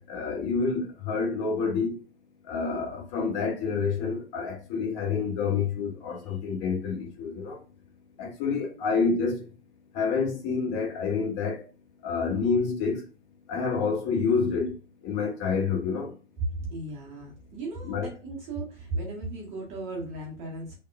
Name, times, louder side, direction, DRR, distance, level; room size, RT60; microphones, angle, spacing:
voice 1, 0.0-2.0 2.5-7.6 8.2-9.4 9.9-11.6 12.0-13.0 13.5-14.7 15.0-16.1 17.9-18.1, left 5 dB, 25° left, 0.8 m, -28 dB
voice 2, 16.5-20.8, right 2 dB, 20° right, 0.6 m, -36 dB
3.4 x 2.0 x 2.3 m
figure-of-eight pair, 115°, 35 cm